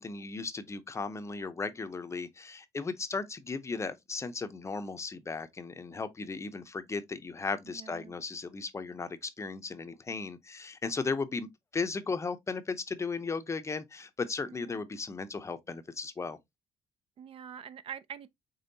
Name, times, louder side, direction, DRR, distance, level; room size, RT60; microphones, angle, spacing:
voice 1, 0.0-16.4, left 4 dB, 20° left, 0.6 m, -36 dB
voice 2, 7.7-8.1 14.5-14.8 17.2-18.3, right 8 dB, 50° right, 0.4 m, -45 dB
5.3 x 3.4 x 2.7 m
cardioid pair, 115°, 13 cm